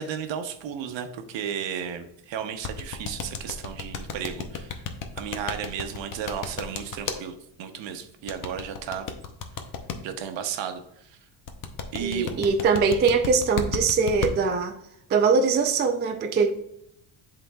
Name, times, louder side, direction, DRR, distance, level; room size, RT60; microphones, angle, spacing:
voice 1, 0.0-4.8 5.2-9.1 10.0-11.2 11.9-12.4, right 8 dB, 65° right, 0.9 m, -34 dB
sound 1, 2.6-7.2 8.3-10.0 11.5-14.3, left 7 dB, 40° left, 0.7 m, -32 dB
voice 2, 12.0-14.7 15.1-16.5, right 5 dB, 25° right, 0.3 m, -22 dB
10.5 x 3.8 x 2.3 m
cardioid pair, 155°, 48 cm